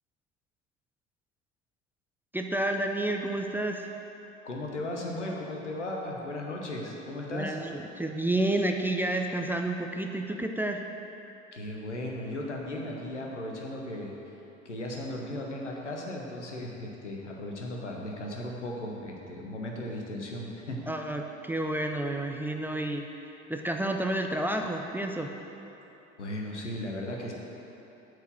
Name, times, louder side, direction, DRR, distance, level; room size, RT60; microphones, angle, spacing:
voice 1, 2.3-3.9 7.3-10.8 20.9-25.3, right 1 dB, 5° right, 3 dB, 0.4 m, -30 dB
voice 2, 4.4-7.6 11.5-14.2 14.6-20.8 26.2-27.3, left 1 dB, 85° left, -1 dB, 1.0 m, -36 dB
7.9 x 4.7 x 7.0 m, 3.0 s
figure-of-eight pair, 65°, 34 cm